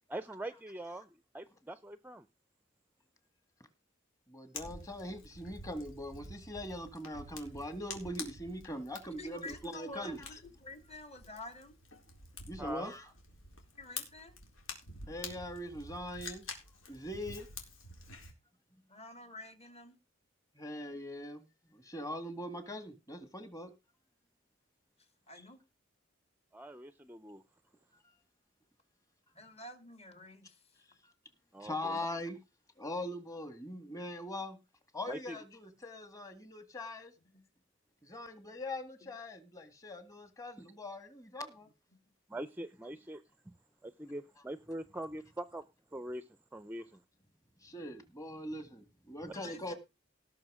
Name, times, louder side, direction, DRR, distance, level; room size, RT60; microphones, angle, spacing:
voice 1, 0.1-1.1 1.3-2.2 12.6-12.9 26.5-27.4 31.5-32.0 35.1-35.4 40.6-40.7 42.3-43.5 43.8-45.6 45.9-47.0, right 1 dB, 10° right, 15 dB, 0.5 m, -43 dB
voice 2, 4.3-10.4 12.5-13.1 15.1-16.5 16.9-17.5 20.6-23.7 31.0-31.1 31.6-32.4 32.8-34.6 34.9-37.1 38.0-41.7 47.6-49.7, left 1 dB, 15° left, 10 dB, 2.0 m, -42 dB
Fire, 4.5-18.3, left 3 dB, 90° left, 4.2 m, -48 dB
voice 3, 9.2-11.8 13.7-14.4 18.9-20.0 25.3-25.6 29.4-30.6 49.3-49.7, left 2 dB, 30° left, 10 dB, 2.1 m, -49 dB
18.5 x 6.3 x 5.0 m, 0.27 s
head